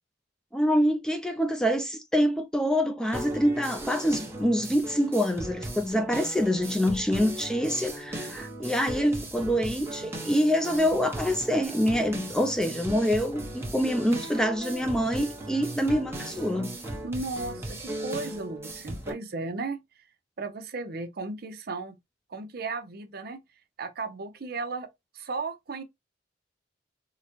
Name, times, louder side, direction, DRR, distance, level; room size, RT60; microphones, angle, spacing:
voice 1, 0.5-16.8, equal, 5° left, 0.3 m, -26 dB
sound 1, 3.1-19.1, right 1 dB, 15° right, 0.8 m, -37 dB
voice 2, 17.0-19.8 20.4-21.9 22.3-23.4 23.8-24.9 25.1-25.8, right 3 dB, 55° right, 0.6 m, -35 dB
3.8 x 2.1 x 2.9 m
head